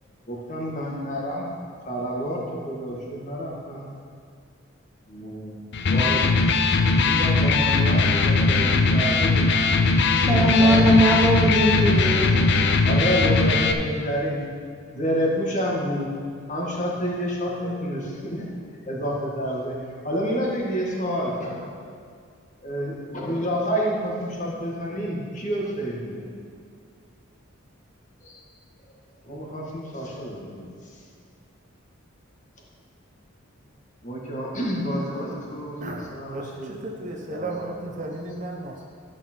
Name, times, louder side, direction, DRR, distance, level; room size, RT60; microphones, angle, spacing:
voice 1, 0.3-1.5 1.9-3.9 5.1-5.7 5.9-6.3 7.0-9.6 10.3-10.9 11.5-11.6 12.0-12.1 12.8-14.5 14.9-16.1 16.5-18.5 18.9-19.8 20.0-21.7 22.6-26.4 29.2-31.0 34.0-36.7 37.3-38.2, equal, 35° left, -3 dB, 1.8 m, -29 dB
Electric guitar, 5.7-13.7, left 3 dB, 55° left, 0.6 m, -20 dB
voice 2, 10.1-12.7, equal, 10° right, -4 dB, 0.7 m, -20 dB
voice 3, 36.3-38.8, right 2 dB, 35° right, 1 dB, 1.0 m, -34 dB
13.0 x 6.5 x 4.5 m, 2.2 s
head